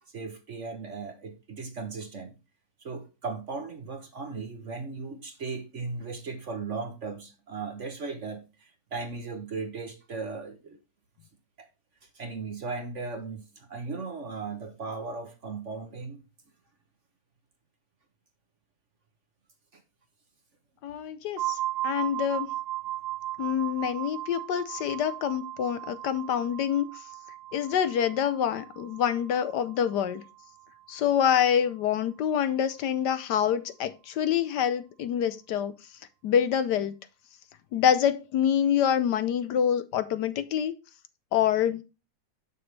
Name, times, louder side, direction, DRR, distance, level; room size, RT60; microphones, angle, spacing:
voice 1, 0.1-2.4 2.8-10.8 11.6-11.7 12.0-16.2 19.7-19.8, right 4 dB, 45° right, 1.1 m, -37 dB
voice 2, 20.8-21.6 21.8-22.5 23.4-26.9 27.5-30.2 30.9-35.7 36.2-36.9 37.7-40.7 41.3-41.8, left 9 dB, 70° left, 1.2 m, -26 dB
sound 1, 21.4-31.0, right 15 dB, 85° right, 1.5 m, -37 dB
7.0 x 6.9 x 3.2 m
omnidirectional pair, 2.0 m